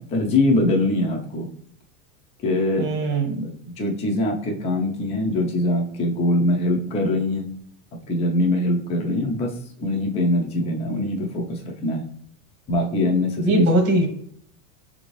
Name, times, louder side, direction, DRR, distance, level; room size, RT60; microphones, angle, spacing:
voice 1, 0.0-1.5 2.4-3.2 3.8-7.5 8.1-12.0 12.7-13.7, left 1 dB, 15° left, 1 dB, 0.4 m, -23 dB
voice 2, 2.8-3.5 13.4-14.1, right 2 dB, 25° right, 3 dB, 1.0 m, -21 dB
5.7 x 2.6 x 3.0 m, 0.66 s
supercardioid pair, 150°, 46 cm